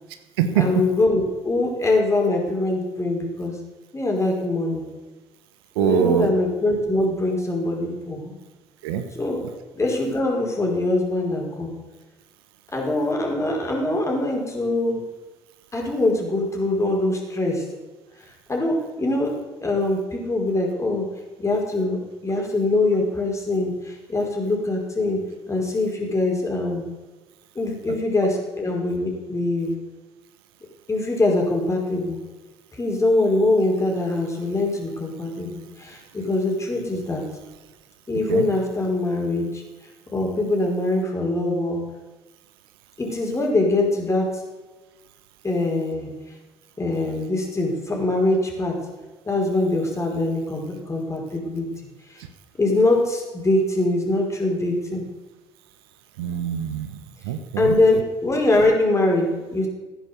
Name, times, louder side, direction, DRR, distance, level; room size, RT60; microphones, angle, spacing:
voice 1, 0.5-3.5 3.9-4.8 5.8-8.3 9.1-9.4 9.7-11.7 12.7-15.0 15.7-17.6 18.5-19.3 19.6-21.1 21.4-25.2 25.5-26.8 27.5-29.8 30.9-32.2 32.8-37.2 38.1-39.6 40.1-41.8 43.0-44.4 45.4-46.1 46.8-48.8 49.2-51.6 52.1-52.2 52.6-55.0 57.6-59.7, left 2 dB, 25° left, 0 dB, 5.3 m, -23 dB
voice 2, 5.8-6.3 8.8-9.0 38.3-38.4 56.2-56.9 57.2-57.8, right 9 dB, 75° right, 9 dB, 1.3 m, -22 dB
15.0 x 10.5 x 7.2 m, 1.2 s
hypercardioid pair, 60°, 13 cm